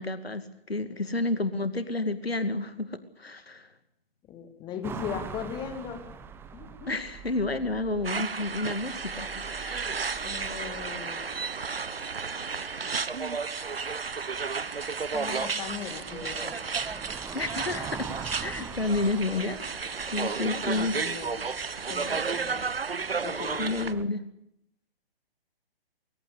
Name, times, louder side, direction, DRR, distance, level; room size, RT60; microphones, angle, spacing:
voice 1, 0.0-3.7 6.9-10.1 17.3-18.0 18.4-19.6 20.1-21.0 23.6-24.2, left 2 dB, 75° left, 11 dB, 2.4 m, -30 dB
voice 2, 4.3-6.0 6.5-6.9 10.2-11.4 15.1-16.6 20.4-21.4 21.9-22.6 23.2-24.0, left 7 dB, 15° left, 8 dB, 2.3 m, -38 dB
sound 1, 4.8-24.0, right 6 dB, 5° right, 1.1 m, -45 dB
sound 2, 8.0-23.9, right 5 dB, 70° right, 1.3 m, -33 dB
22.5 x 19.5 x 8.4 m, 0.78 s
figure-of-eight pair, 130°, 30 cm